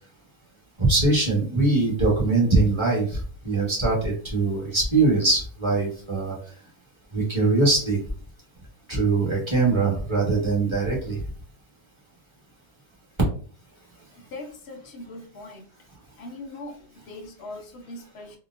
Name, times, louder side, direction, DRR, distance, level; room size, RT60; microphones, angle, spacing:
voice 1, 0.8-6.4 7.1-8.0 8.9-11.2, right 3 dB, 20° right, -4 dB, 0.9 m, -22 dB
voice 2, 14.2-15.6 16.2-18.4, left 2 dB, 60° left, 2 dB, 0.7 m, -40 dB
3.9 x 2.0 x 2.4 m, 0.43 s
omnidirectional pair, 1.6 m